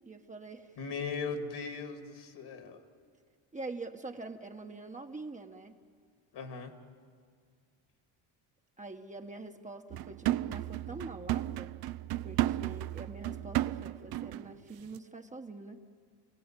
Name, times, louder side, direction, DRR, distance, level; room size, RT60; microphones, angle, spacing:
voice 1, 0.1-0.7 3.5-5.7 8.8-11.8 12.2-15.8, right 3 dB, 15° right, 4 dB, 1.1 m, -45 dB
voice 2, 0.8-2.8 6.3-6.7, left 4 dB, 65° left, 5 dB, 2.6 m, -38 dB
sound 1, 9.9-14.5 14.8-15.0, right 14 dB, 60° right, 0.5 m, -34 dB
29.0 x 17.0 x 9.0 m, 2.1 s
cardioid pair, 125°, 43 cm